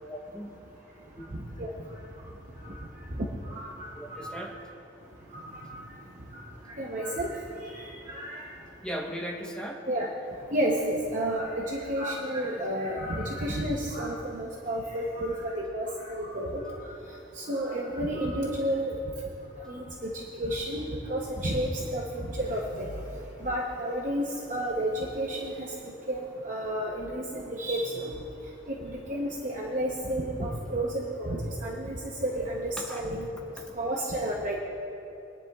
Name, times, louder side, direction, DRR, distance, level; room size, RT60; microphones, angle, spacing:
voice 1, 0.1-0.5 1.2-1.3 3.9-4.6 8.8-9.8 32.8-33.3, equal, 5° left, 0 dB, 1.0 m, -37 dB
voice 2, 3.5-3.9 4.2-4.3 5.3-5.7 6.8-7.3 7.7-8.4 9.9-10.1 10.5-16.6 17.4-18.9 19.6-22.9 23.4-24.2 24.5-25.7 26.1-28.0 28.7-31.9 32.2-33.2 33.8-34.5, right 1 dB, 40° right, -2 dB, 0.9 m, -31 dB
21.5 x 10.5 x 2.4 m, 2.8 s
head